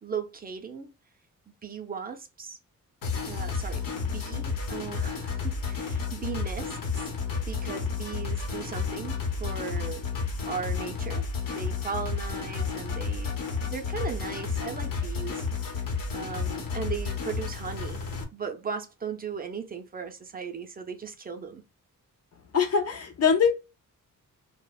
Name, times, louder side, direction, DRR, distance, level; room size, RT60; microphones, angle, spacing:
voice 1, 0.0-0.9 1.6-2.6 3.3-7.1 7.5-10.0 10.4-11.2 11.5-15.4 15.8-18.0 18.3-21.6, right 6 dB, 25° right, 0.4 m, -37 dB
sound 1, 3.0-18.2, left 5 dB, 80° left, 0.9 m, -31 dB
voice 2, 22.5-23.5, left 6 dB, 50° left, 0.5 m, -23 dB
2.8 x 2.1 x 2.2 m
wide cardioid pair, 145°, 33 cm